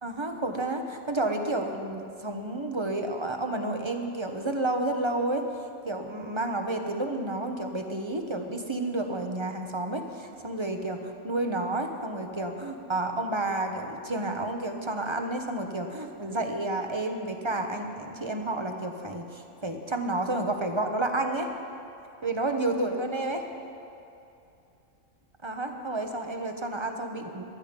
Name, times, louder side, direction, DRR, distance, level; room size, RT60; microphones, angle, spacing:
voice 1, 0.0-5.5 5.8-21.5 22.2-23.5 25.4-27.4, right 2 dB, 25° right, 5 dB, 1.0 m, -30 dB
19.0 x 12.0 x 5.3 m, 2.7 s
omnidirectional pair, 1.3 m